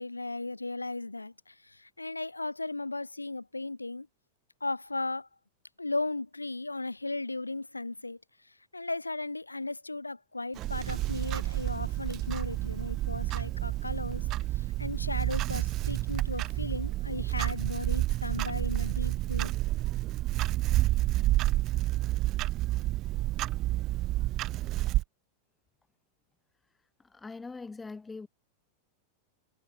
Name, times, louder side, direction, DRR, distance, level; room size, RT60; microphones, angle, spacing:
voice 1, 0.0-4.1 4.6-5.3 5.8-8.2 8.7-14.2 14.5-19.5, left 2 dB, 80° left, 1.5 m, -36 dB
Clock, 10.6-25.0, right 16 dB, 35° right, 0.9 m, -30 dB
voice 2, 27.0-28.3, left 4 dB, 10° left, 1.4 m, -42 dB
figure-of-eight pair, 90°, 0 cm